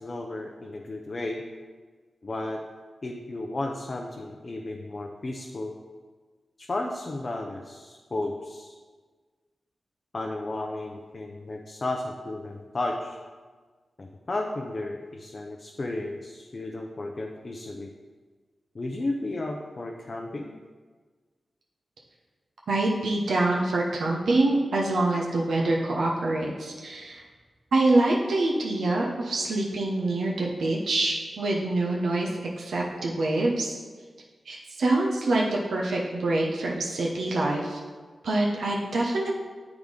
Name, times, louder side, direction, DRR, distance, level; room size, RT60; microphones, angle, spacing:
voice 1, 0.0-1.4 2.2-2.6 3.0-5.7 6.6-8.7 10.1-13.2 14.0-17.9 18.7-20.5, left 2 dB, 40° left, 1 dB, 0.6 m, -33 dB
voice 2, 22.7-27.2 27.7-32.3 32.6-33.8 34.5-37.8 38.2-39.4, right 2 dB, 90° right, -2 dB, 0.8 m, -25 dB
8.0 x 3.6 x 5.1 m, 1.5 s
wide cardioid pair, 85°, 0 cm